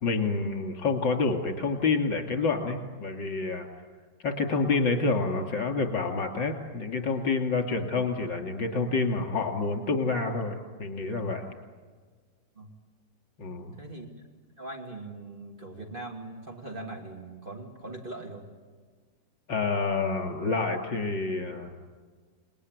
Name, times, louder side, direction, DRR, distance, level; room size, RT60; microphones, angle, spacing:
voice 1, 0.0-3.7 4.2-11.5 13.4-13.8 19.5-21.7, left 4 dB, 75° left, 4 dB, 3.4 m, -28 dB
voice 2, 13.8-14.2 14.6-18.4, right 2 dB, 25° right, 1 dB, 2.7 m, -41 dB
28.5 x 20.0 x 9.6 m, 1.5 s
omnidirectional pair, 2.0 m